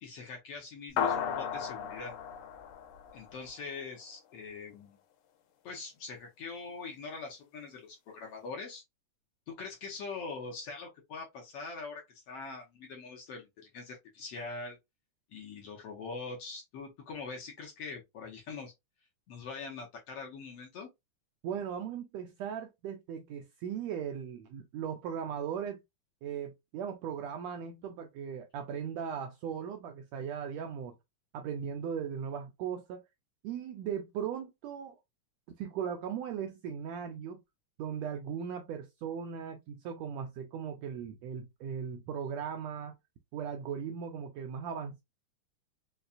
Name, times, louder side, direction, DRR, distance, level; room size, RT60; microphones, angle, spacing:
voice 1, 0.0-2.1 3.1-5.0 5.6-8.8 9.5-14.8 15.3-18.7 19.3-20.9, left 4 dB, 70° left, 1.5 m, -43 dB
sound 1, 1.0-3.7, left 7 dB, 90° left, 2.2 m, -35 dB
voice 2, 21.4-25.8 26.2-30.9 31.3-33.0 33.4-35.0 35.6-37.4 37.8-43.0 43.3-45.0, right 7 dB, 85° right, 1.5 m, -38 dB
5.5 x 2.3 x 2.4 m
omnidirectional pair, 3.5 m